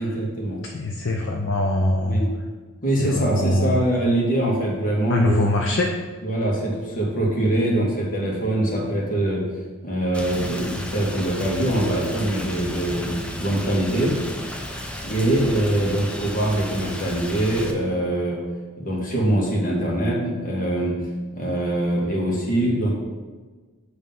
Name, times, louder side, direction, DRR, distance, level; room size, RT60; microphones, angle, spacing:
voice 1, 0.0-0.6 2.0-2.3 2.8-5.4 6.2-9.4 9.8-13.1 13.4-14.1 15.0-18.4 18.8-21.0 21.3-22.9, right 1 dB, 40° left, -3 dB, 1.6 m, -23 dB
voice 2, 0.7-2.2 3.0-3.9 5.1-5.9, left 1 dB, 55° left, 1 dB, 0.5 m, -23 dB
Rain, 10.1-17.7, left 1 dB, 5° left, 0.4 m, -33 dB
7.6 x 3.2 x 5.4 m, 1.4 s
head